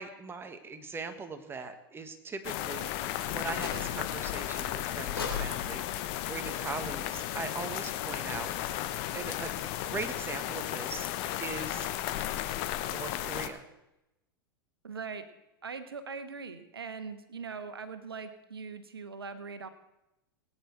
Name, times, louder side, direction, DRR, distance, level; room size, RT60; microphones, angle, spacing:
voice 1, 0.0-11.1 11.4-11.9 12.2-13.6, right 4 dB, 20° right, 8 dB, 1.6 m, -41 dB
sound 1, 2.4-13.5, left 13 dB, 50° left, 1.0 m, -34 dB
sound 2, 3.5-4.2 5.2-7.4, left 6 dB, 85° left, 3.7 m, -40 dB
sound 3, 4.0-8.9, right 8 dB, 65° right, 2.0 m, -57 dB
voice 2, 14.8-15.3 15.6-19.7, right 5 dB, 85° right, 10 dB, 1.3 m, -41 dB
19.0 x 9.5 x 4.7 m, 0.91 s
hypercardioid pair, 100°, 12 cm